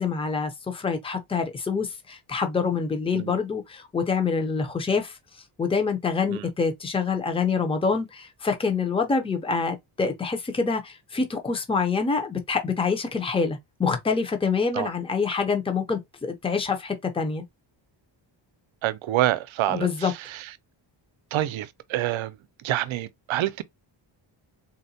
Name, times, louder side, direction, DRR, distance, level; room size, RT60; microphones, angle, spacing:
voice 1, 0.0-5.2 5.6-17.4 19.7-20.1, left 5 dB, 10° left, 0.5 m, -26 dB
voice 2, 18.8-20.5 21.3-22.4 22.6-23.6, right 14 dB, 75° right, 0.6 m, -27 dB
3.9 x 2.1 x 2.7 m
wide cardioid pair, 140°, 48 cm